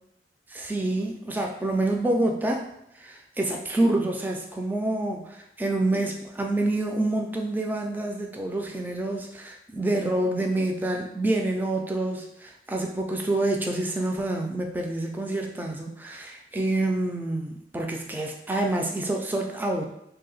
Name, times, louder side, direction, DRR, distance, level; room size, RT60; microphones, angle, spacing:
voice 1, 0.5-2.7 3.0-19.9, right 2 dB, 10° right, 1 dB, 0.3 m, -27 dB
2.7 x 2.1 x 4.0 m, 0.81 s
head